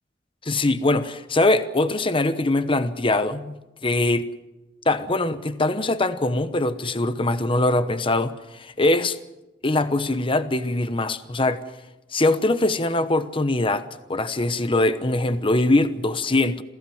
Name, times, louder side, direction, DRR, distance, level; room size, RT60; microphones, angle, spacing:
voice 1, 0.4-4.3 4.9-9.2 9.6-11.6 12.1-13.8 14.1-16.6, left 2 dB, 30° left, 1.0 m, -22 dB
27.0 x 16.5 x 7.8 m
head